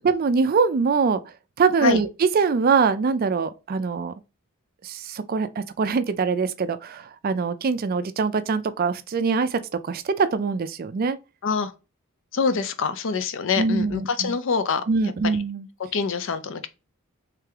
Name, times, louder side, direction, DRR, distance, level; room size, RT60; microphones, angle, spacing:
voice 1, 0.0-1.2 1.6-4.1 4.8-9.6 9.9-11.2 13.6-14.3 14.9-15.7, right 5 dB, 40° right, 0.3 m, -23 dB
voice 2, 12.3-14.8 15.9-16.7, left 5 dB, 55° left, 0.5 m, -25 dB
3.3 x 3.3 x 3.4 m
head